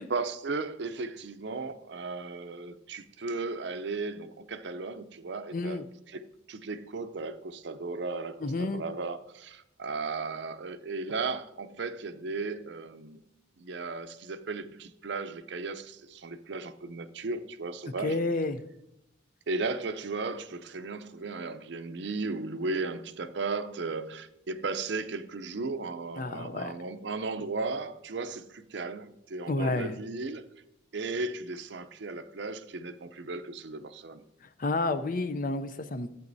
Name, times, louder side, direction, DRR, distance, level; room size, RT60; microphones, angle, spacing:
voice 1, 0.0-13.2 13.6-18.2 19.5-30.4 30.9-34.2, right 3 dB, 60° right, 0.5 m, -35 dB
voice 2, 5.5-5.9 8.4-8.8 18.0-18.6 26.2-26.7 29.5-29.9 34.6-36.1, left 2 dB, 40° left, 0.5 m, -30 dB
14.5 x 8.4 x 2.7 m
head